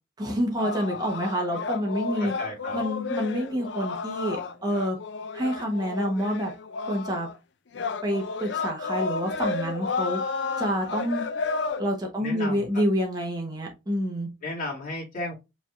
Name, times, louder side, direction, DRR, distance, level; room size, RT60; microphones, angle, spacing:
voice 1, 0.2-2.3 2.7-5.0 5.3-6.5 6.9-7.3 8.0-10.2 10.6-11.2 11.8-14.3, equal, 20° right, 1.0 m, -28 dB
sound 1, 0.6-7.4 7.7-11.8, left 4 dB, 60° left, 0.5 m, -32 dB
voice 2, 2.2-2.8 12.2-12.7 14.4-15.3, left 2 dB, 40° left, 2.3 m, -34 dB
5.0 x 3.4 x 2.5 m
head